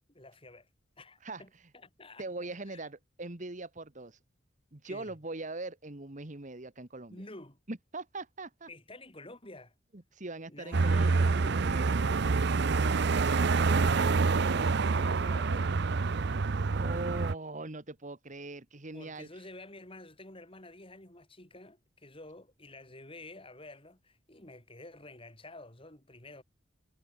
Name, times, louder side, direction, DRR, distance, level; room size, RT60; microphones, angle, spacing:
voice 1, 0.1-0.7 1.0-2.3 2.7-2.9 4.8-5.2 7.1-7.6 8.7-9.7 10.5-12.2 12.7-15.8 18.9-26.4, left 2 dB, 30° left, 5.8 m, -50 dB
voice 2, 2.2-4.2 4.7-7.2 7.7-8.7 10.1-11.9 16.7-19.3, right 2 dB, 40° right, 1.6 m, -41 dB
sound 1, 10.7-17.3, right 4 dB, 60° right, 0.6 m, -27 dB
head